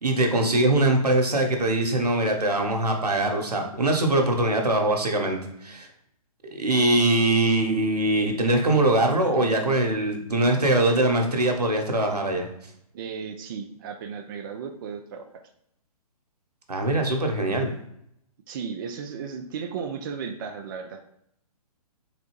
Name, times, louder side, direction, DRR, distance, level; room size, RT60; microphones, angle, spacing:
voice 1, 0.0-5.9 6.5-12.5 16.7-17.7, right 1 dB, 85° right, 3 dB, 0.9 m, -22 dB
voice 2, 12.9-15.4 18.5-21.0, right 6 dB, 35° right, 5 dB, 0.3 m, -35 dB
4.0 x 3.1 x 3.0 m, 0.75 s
figure-of-eight pair, 130°, 20 cm